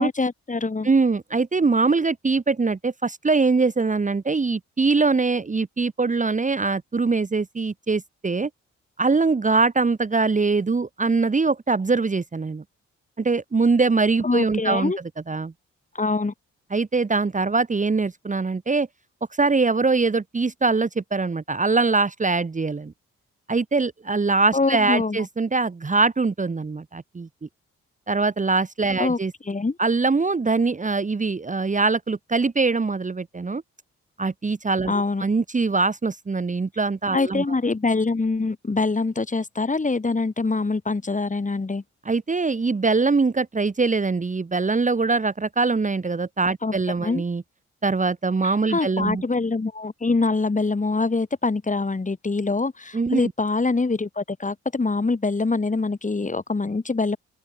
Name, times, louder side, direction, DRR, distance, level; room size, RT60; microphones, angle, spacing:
voice 1, 0.0-0.9 14.2-15.0 15.9-16.3 24.5-25.2 29.0-29.2 29.5-29.8 34.9-35.2 37.1-41.8 46.6-46.7 47.0-47.2 48.7-57.2, left 3 dB, 25° left, 2.1 m, -24 dB
voice 2, 0.8-8.5 9.0-12.6 13.2-14.9 15.3-15.5 16.7-18.9 19.4-22.9 23.5-27.3 28.1-29.3 29.8-33.6 34.2-37.4 42.0-47.4 47.8-49.2 52.9-53.3, right 4 dB, 25° right, 1.1 m, -22 dB
open air
supercardioid pair, 55°, 30 cm